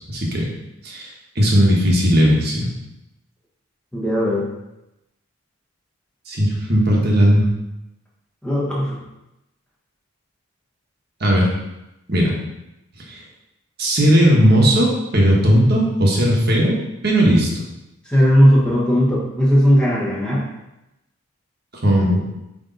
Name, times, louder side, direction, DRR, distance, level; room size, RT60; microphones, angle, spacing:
voice 1, 0.1-0.4 0.8-2.7 6.3-7.5 11.2-11.5 12.1-12.4 13.1-13.2 13.8-16.7 17.0-17.5 21.8-22.2, equal, 45° right, -2 dB, 1.3 m, -16 dB
voice 2, 3.9-4.5 8.4-9.0 18.0-20.5, equal, 5° left, -6 dB, 1.3 m, -17 dB
8.4 x 3.5 x 4.0 m, 0.92 s
head